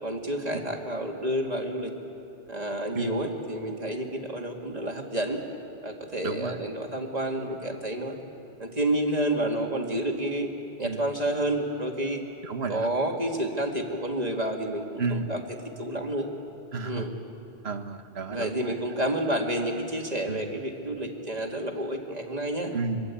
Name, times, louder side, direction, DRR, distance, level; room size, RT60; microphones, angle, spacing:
voice 1, 0.0-1.9 2.5-5.4 5.8-8.2 8.6-10.5 10.8-12.2 12.7-15.4 15.8-16.3 16.8-17.1 18.3-22.7, right 1 dB, 35° right, 2 dB, 2.2 m, -29 dB
voice 2, 6.2-6.6 10.8-11.0 12.5-12.9 15.0-15.3 16.7-17.0 17.6-18.6 20.3-20.4 22.7-23.1, right 4 dB, 65° right, 9 dB, 1.4 m, -31 dB
24.5 x 22.5 x 8.5 m, 2.8 s
omnidirectional pair, 1.2 m